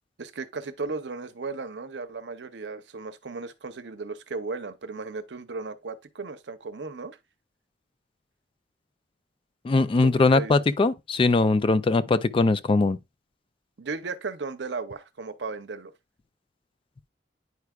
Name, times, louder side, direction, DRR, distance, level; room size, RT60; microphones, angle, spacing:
voice 1, 0.2-7.2 10.0-10.5 13.8-15.9, right 4 dB, 75° right, 0.7 m, -35 dB
voice 2, 9.6-13.0, left 3 dB, 30° left, 0.3 m, -21 dB
9.4 x 4.7 x 2.3 m
head